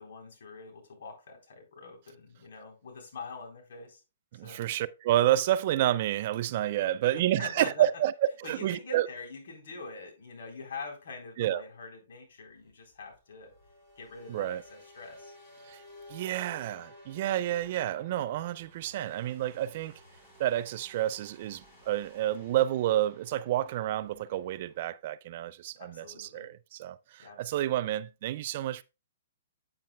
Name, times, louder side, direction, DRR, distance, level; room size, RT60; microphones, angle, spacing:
voice 1, 0.0-4.0 4.4-4.6 7.4-7.9 8.4-13.5 14.0-15.3 25.8-26.5 27.2-27.8, left 3 dB, 70° left, 3.7 m, -44 dB
voice 2, 4.3-8.1 8.4-9.1 11.4-11.6 14.3-14.6 15.7-15.8 16.1-19.9 20.4-28.8, right 13 dB, 45° right, 0.4 m, -29 dB
sound 1, 12.4-24.8, left 1 dB, 20° left, 3.5 m, -55 dB
8.8 x 8.7 x 2.2 m
hypercardioid pair, 150°, 0 cm